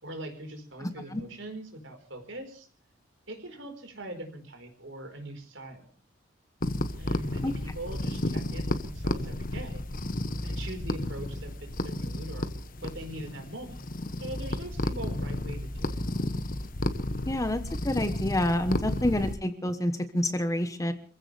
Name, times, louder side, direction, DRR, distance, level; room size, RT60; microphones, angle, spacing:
voice 1, 0.0-2.7 3.3-5.9 7.0-9.8 10.4-12.5 12.8-13.9 14.2-16.0, right 1 dB, 70° right, 6 dB, 4.6 m, -41 dB
voice 2, 0.8-1.2 7.4-7.5 17.3-20.9, left 1 dB, 15° left, 9 dB, 1.1 m, -28 dB
sound 1, 6.6-19.3, left 1 dB, 45° left, 1.2 m, -32 dB
26.5 x 16.0 x 3.4 m, 0.38 s
head